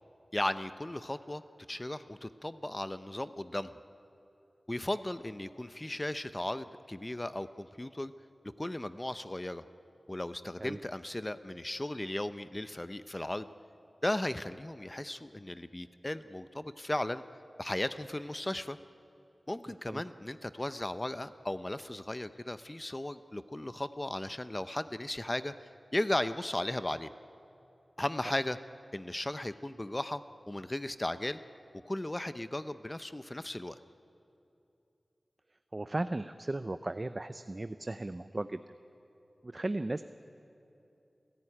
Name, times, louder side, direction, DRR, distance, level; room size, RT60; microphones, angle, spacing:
voice 1, 0.3-1.4 1.7-3.7 4.7-8.1 8.6-9.6 10.1-13.5 14.0-17.2 17.6-18.8 19.5-27.1 28.0-28.6 28.9-31.4 31.8-33.8, left 1 dB, 25° left, 12 dB, 0.7 m, -36 dB
voice 2, 19.7-20.0 35.7-38.6 39.4-40.0, right 2 dB, 40° right, 11 dB, 0.6 m, -36 dB
28.5 x 14.0 x 9.9 m, 2.8 s
wide cardioid pair, 45°, 0 cm